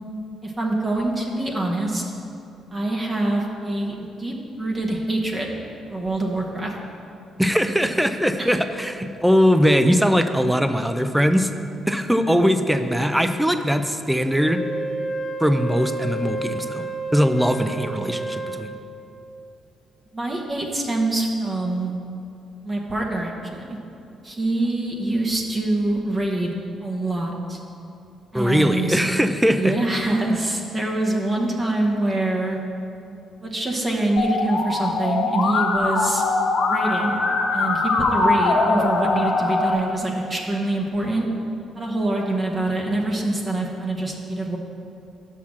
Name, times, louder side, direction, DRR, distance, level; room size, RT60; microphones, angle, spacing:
voice 1, 0.4-2.0 2.7-5.5 5.9-6.7 8.4-8.6 20.1-21.9 22.6-23.8 24.2-26.5 26.8-27.6 28.3-29.0 29.5-32.6 33.4-36.2 36.7-37.2 37.5-41.2 41.8-44.6, right 2 dB, 30° right, -1 dB, 1.0 m, -25 dB
voice 2, 7.4-11.5 11.9-14.6 15.4-18.7 28.3-29.8, equal, 5° right, 8 dB, 0.4 m, -20 dB
Wind instrument woodwind instrument, 14.4-18.7, right 2 dB, 50° left, 1.5 m, -30 dB
Musical instrument, 34.2-39.7, left 3 dB, 75° left, 0.9 m, -22 dB
5.8 x 5.8 x 6.3 m, 2.7 s
cardioid pair, 90°, 0 cm